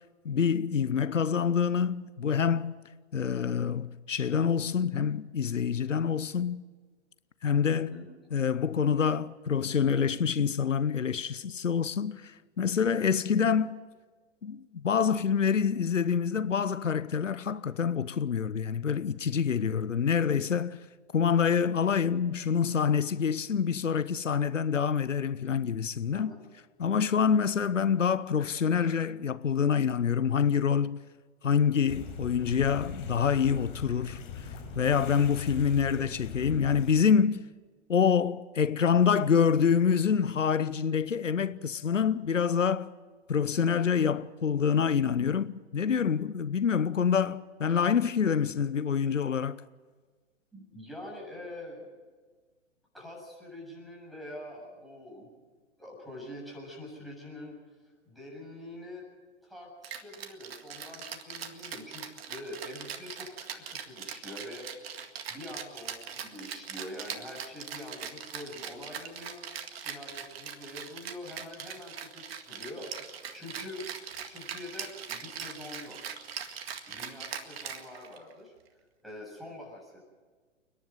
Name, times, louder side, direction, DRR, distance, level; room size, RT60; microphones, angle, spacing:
voice 1, 0.2-2.7 3.1-6.6 7.4-7.9 8.3-13.8 14.4-20.8 21.1-26.3 26.8-31.0 31.4-37.4 37.9-42.9 43.3-49.6, left 7 dB, 90° left, 0.8 m, -26 dB
voice 2, 7.7-8.1 26.1-26.4 50.5-51.9 52.9-55.3 55.8-57.6 58.0-59.0 59.4-64.7 65.3-69.4 69.7-73.8 74.3-76.0 76.9-78.5 79.0-80.0, left 1 dB, ahead, 7.4 m, -45 dB
sound 1, 31.9-36.9, left 5 dB, 45° left, 5.7 m, -41 dB
Rattle (instrument), 59.8-78.3, right 8 dB, 55° right, 2.0 m, -41 dB
29.5 x 11.0 x 9.4 m
figure-of-eight pair, 120°, 36 cm